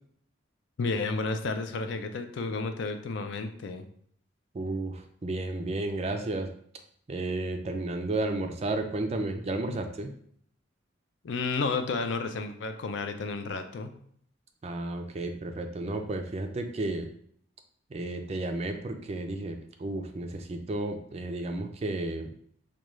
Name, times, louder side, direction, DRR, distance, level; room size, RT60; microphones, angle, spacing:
voice 1, 0.8-3.8 11.2-13.9, left 3 dB, 60° left, 8 dB, 0.4 m, -31 dB
voice 2, 4.5-6.5 7.1-10.1 14.6-17.1 17.9-22.3, right 2 dB, 30° right, 6 dB, 0.3 m, -32 dB
4.9 x 2.2 x 3.0 m, 0.63 s
head